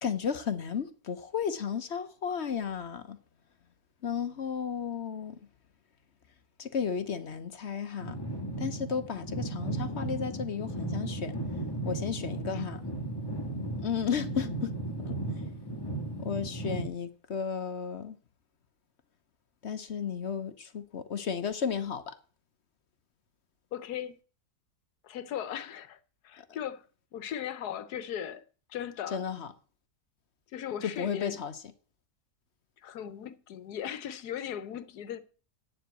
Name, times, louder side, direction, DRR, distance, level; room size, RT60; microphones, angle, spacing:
voice 1, 0.0-3.2 4.0-5.4 6.6-8.2 8.6-11.3 11.8-12.8 13.8-14.7 15.1-15.2 16.2-18.2 19.6-22.1 26.4-26.5 29.1-29.5 30.8-31.6, left 7 dB, 50° left, 1.0 m, -33 dB
sound 1, 8.0-16.9, right 2 dB, 15° left, 1.7 m, -35 dB
voice 2, 23.7-24.2 25.0-26.0 26.2-26.9 27.1-28.4 28.7-29.2 30.5-31.4 32.8-35.2, left 9 dB, 90° left, 1.4 m, -38 dB
8.8 x 7.5 x 8.1 m
omnidirectional pair, 1.6 m